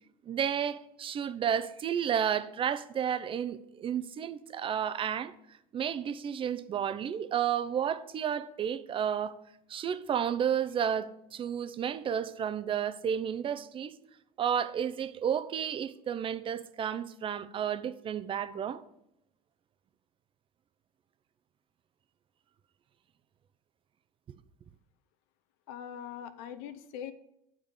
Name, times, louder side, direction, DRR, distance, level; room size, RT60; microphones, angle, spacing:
voice 1, 0.3-5.3 5.7-9.4 9.7-14.0 14.4-18.8, right 8 dB, 35° right, 0.5 m, -32 dB
voice 2, 25.7-27.1, left 9 dB, 75° left, 0.7 m, -42 dB
8.7 x 3.6 x 6.5 m
supercardioid pair, 90°, 16 cm